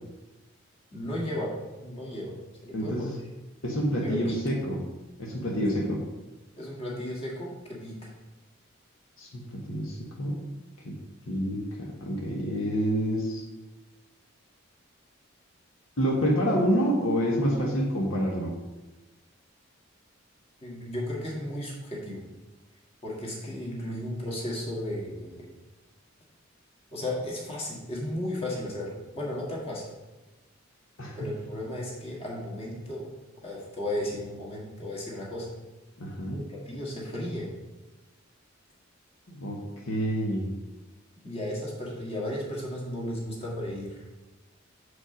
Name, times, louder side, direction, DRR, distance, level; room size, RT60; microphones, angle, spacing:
voice 1, 0.9-1.5 1.8-2.3 2.6-3.1 4.0-4.4 6.6-8.1 20.6-22.2 23.0-25.4 26.9-28.9 29.2-29.9 31.2-33.1 33.4-35.5 36.3-37.5 41.2-44.0, left 1 dB, 30° left, -4 dB, 1.8 m, -34 dB
voice 2, 2.7-3.1 3.6-4.8 5.2-6.0 9.2-10.4 10.8-10.9 11.3-13.4 16.0-18.6 31.0-31.3 36.0-36.4 39.3-39.6 39.9-40.5, equal, 70° left, -1 dB, 1.2 m, -28 dB
6.5 x 5.2 x 5.2 m, 1.1 s
head